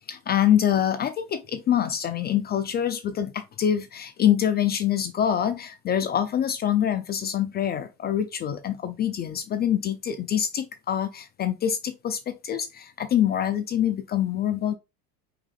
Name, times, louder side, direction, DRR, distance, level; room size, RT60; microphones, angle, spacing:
voice 1, 0.1-14.7, left 10 dB, 25° left, 0.4 m, -25 dB
4.7 x 3.7 x 2.4 m
hypercardioid pair, 85°, 45 cm